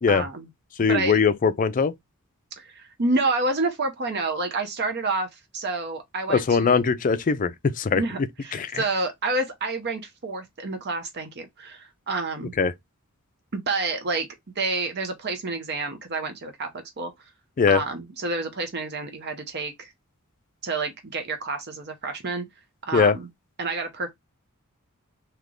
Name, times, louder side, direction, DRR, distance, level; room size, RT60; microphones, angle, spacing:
voice 1, 0.1-0.5 0.9-1.2 2.6-6.8 7.9-12.5 13.5-14.3 14.6-17.1 17.7-19.9 20.6-22.4 22.8-23.3 23.6-24.1, right 3 dB, 50° right, 0.8 m, -29 dB
voice 2, 0.8-1.9 6.3-7.5 7.8-8.0 8.5-8.8 12.6-12.7 17.6-17.8 22.9-23.1, left 5 dB, 40° left, 0.4 m, -21 dB
3.3 x 2.9 x 3.7 m
head